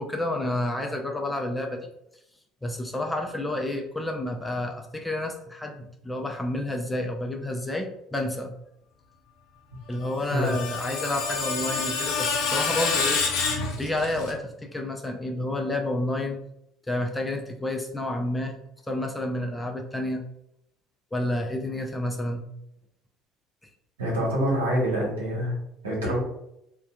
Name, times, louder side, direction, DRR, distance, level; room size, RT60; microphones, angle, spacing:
voice 1, 0.0-1.9 2.6-8.5 9.9-13.5 13.8-16.4 16.9-18.5 18.9-20.2 21.1-22.4, left 1 dB, 10° left, 2 dB, 0.5 m, -30 dB
Screech, 10.0-14.3, left 5 dB, 70° left, 0.4 m, -28 dB
voice 2, 24.0-25.6 25.8-26.2, equal, 85° right, -4 dB, 0.9 m, -25 dB
2.7 x 2.2 x 2.2 m, 0.79 s
hypercardioid pair, 60°, 0 cm